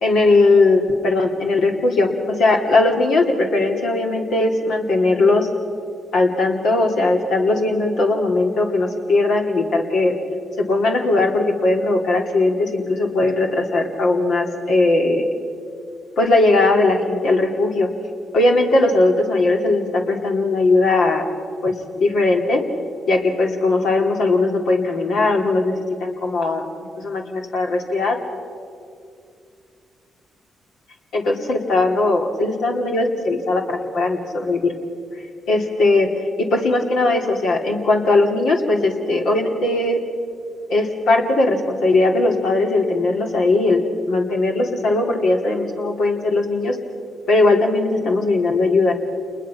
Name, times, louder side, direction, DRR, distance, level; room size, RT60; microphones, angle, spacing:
voice 1, 0.0-5.5 6.1-10.1 10.6-15.3 16.2-17.9 18.3-21.2 21.6-22.6 23.1-26.6 27.0-28.2 31.1-34.7 35.5-40.0 40.7-46.8 47.3-48.9, left 2 dB, 75° left, 1 dB, 2.8 m, -19 dB
28.5 x 21.0 x 5.8 m, 2.4 s
supercardioid pair, 55°, 0 cm